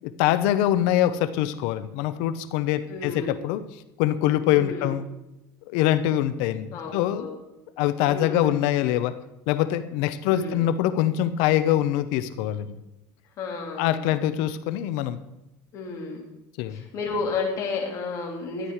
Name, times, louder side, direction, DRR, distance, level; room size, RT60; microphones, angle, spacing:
voice 1, 0.0-3.6 4.0-5.0 5.7-7.3 7.8-9.2 9.5-12.8 13.8-15.2 16.6-16.8, left 12 dB, 70° left, 12 dB, 0.8 m, -24 dB
voice 2, 2.9-3.3 4.5-4.9 6.7-7.4 8.1-8.6 10.2-10.6 13.4-14.2 15.7-16.3 16.7-18.7, left 4 dB, 40° left, 0 dB, 3.2 m, -32 dB
13.0 x 10.5 x 4.8 m, 0.97 s
cardioid pair, 155°, 8 cm